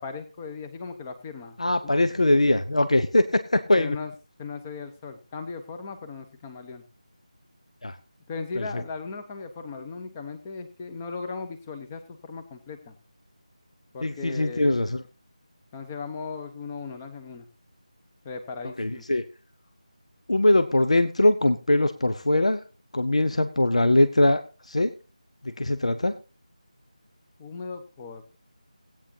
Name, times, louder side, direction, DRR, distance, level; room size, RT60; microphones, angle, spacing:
voice 1, 0.0-1.9 3.7-4.1 4.4-6.8 8.3-12.9 13.9-14.7 15.7-17.4 18.2-19.0 27.4-28.4, left 4 dB, 15° left, 7 dB, 0.9 m, -37 dB
voice 2, 1.6-4.0 7.8-8.0 8.6-8.7 14.0-15.0 18.8-19.2 20.3-22.6 22.9-24.9 25.4-26.2, left 1 dB, 60° left, 9 dB, 0.8 m, -22 dB
17.0 x 9.0 x 2.8 m, 0.32 s
figure-of-eight pair, 165°, 4 cm